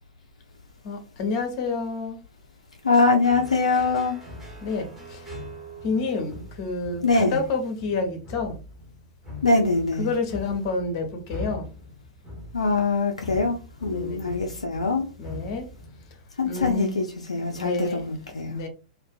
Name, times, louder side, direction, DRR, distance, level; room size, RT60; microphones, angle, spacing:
voice 1, 0.8-2.2 4.6-5.3 5.8-8.6 9.9-11.7 13.9-14.3 15.2-15.7 16.4-17.0 17.5-18.1 18.4-18.7, left 3 dB, 40° left, 0.7 m, -29 dB
voice 2, 2.8-4.2 7.0-7.4 9.4-10.1 12.5-15.1 16.4-18.6, left 3 dB, 75° left, 0.3 m, -23 dB
sound 1, 3.2-16.4, left 2 dB, 10° right, 1.0 m, -42 dB
2.4 x 2.2 x 2.3 m
figure-of-eight pair, 100°, 3 cm